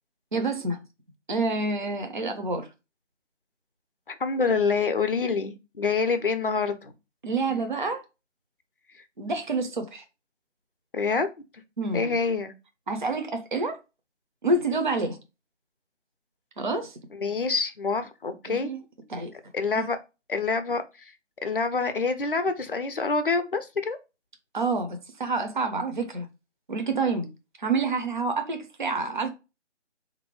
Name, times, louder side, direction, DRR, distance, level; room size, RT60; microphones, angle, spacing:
voice 1, 0.3-0.8 1.3-2.7 7.2-8.0 9.2-10.0 11.8-12.1 12.9-13.8 14.4-15.2 16.6-17.0 18.5-18.8 19.1-19.3 19.8-19.9 24.5-26.3 26.7-27.3 27.6-29.3, right 3 dB, 40° right, 0.5 m, -28 dB
voice 2, 4.1-6.9 7.5-7.6 8.9-9.0 10.9-11.3 11.9-12.5 17.2-18.7 19.5-20.0 20.3-21.1 21.4-24.0, left 4 dB, 50° left, 0.5 m, -26 dB
3.4 x 2.6 x 3.0 m
figure-of-eight pair, 160°, 37 cm